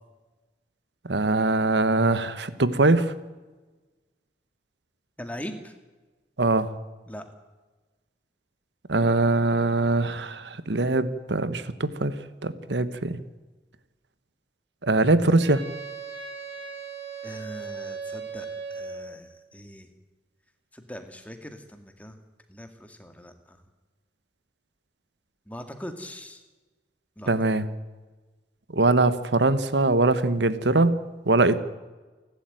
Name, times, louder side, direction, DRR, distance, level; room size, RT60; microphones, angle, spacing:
voice 1, 1.0-3.1 6.4-6.7 8.9-12.1 12.4-13.2 14.8-15.7 27.3-27.7 28.7-31.6, right 2 dB, 85° right, 14 dB, 1.3 m, -22 dB
voice 2, 5.2-5.7 7.1-7.2 17.2-19.9 20.7-22.2 22.5-23.6 25.5-26.4 27.2-27.3, equal, 10° left, 7 dB, 2.1 m, -41 dB
Wind instrument woodwind instrument, 15.4-19.1, right 5 dB, 65° right, 4.4 m, -37 dB
29.5 x 12.5 x 9.2 m, 1.2 s
head